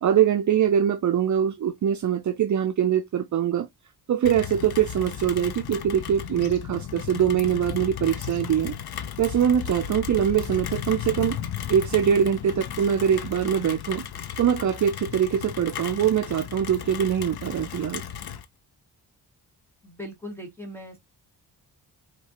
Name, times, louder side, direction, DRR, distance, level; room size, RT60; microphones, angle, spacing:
voice 1, 0.0-3.7 4.1-8.7 9.2-11.4 11.7-14.0 14.4-18.0, right 9 dB, 50° right, 0.5 m, -23 dB
Rain, 4.2-18.4, left 9 dB, 70° left, 0.8 m, -35 dB
voice 2, 19.8-21.0, equal, 5° left, 1.3 m, -39 dB
5.1 x 3.3 x 2.9 m
wide cardioid pair, 120°, 40 cm